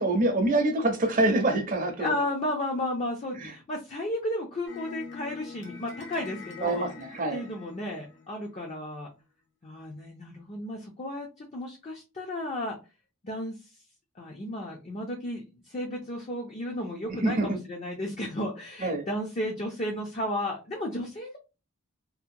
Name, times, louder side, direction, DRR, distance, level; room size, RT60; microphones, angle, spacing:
voice 1, 0.0-2.1 3.4-3.5 6.6-7.4 17.1-17.6 18.8-19.0, right 2 dB, 35° right, 0.5 m, -25 dB
voice 2, 2.0-6.9 7.3-9.1 9.6-12.8 13.2-13.6 14.2-21.4, left 1 dB, 30° left, 0.5 m, -33 dB
sound 1, 4.7-9.0, left 5 dB, 55° left, 0.8 m, -45 dB
2.7 x 2.1 x 2.5 m
head